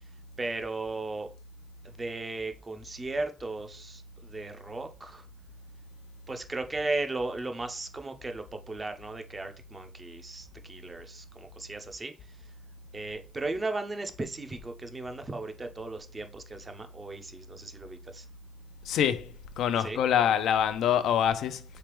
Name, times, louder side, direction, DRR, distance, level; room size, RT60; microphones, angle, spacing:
voice 1, 0.4-1.3 1.8-5.3 6.3-12.4 12.9-18.3 19.8-20.0, right 2 dB, 25° right, 0.5 m, -36 dB
voice 2, 18.9-21.6, left 9 dB, 80° left, 0.3 m, -25 dB
3.3 x 3.3 x 3.0 m
cardioid pair, 90°, 0 cm